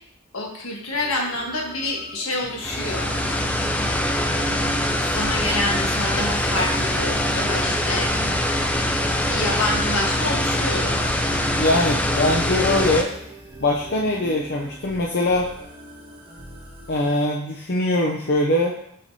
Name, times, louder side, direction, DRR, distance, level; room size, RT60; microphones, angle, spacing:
voice 1, 0.3-3.1 4.4-4.7 5.0-8.1 9.2-11.2, left 2 dB, 75° left, 0 dB, 1.4 m, -27 dB
sound 1, 0.9-17.1, equal, 20° right, 1.4 m, -43 dB
sound 2, 2.6-13.0, left 1 dB, 5° left, 0.4 m, -23 dB
voice 2, 11.5-13.1 13.6-15.5 16.9-18.8, left 1 dB, 50° left, -2 dB, 0.6 m, -22 dB
6.1 x 5.7 x 2.8 m, 0.69 s
head